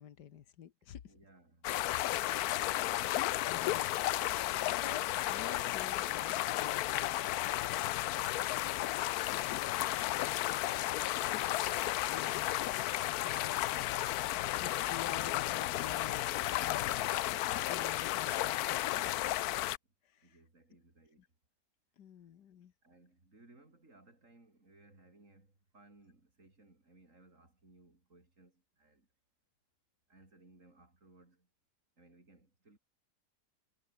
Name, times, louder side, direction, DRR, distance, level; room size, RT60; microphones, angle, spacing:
voice 1, 0.0-1.1 3.5-4.0 4.7-7.7 9.3-10.4 12.1-17.0 17.3-19.6 20.0-20.4 21.2-21.3 22.0-22.7, left 9 dB, 90° left, 1.8 m, -50 dB
voice 2, 1.1-3.2 8.1-8.7 10.2-11.5 14.5-15.0 20.2-21.3 22.8-29.1 30.1-31.5 32.0-32.8, right 2 dB, 50° right, 5.5 m, -63 dB
sound 1, 1.6-19.8, left 15 dB, 75° left, 1.0 m, -33 dB
omnidirectional pair, 1.8 m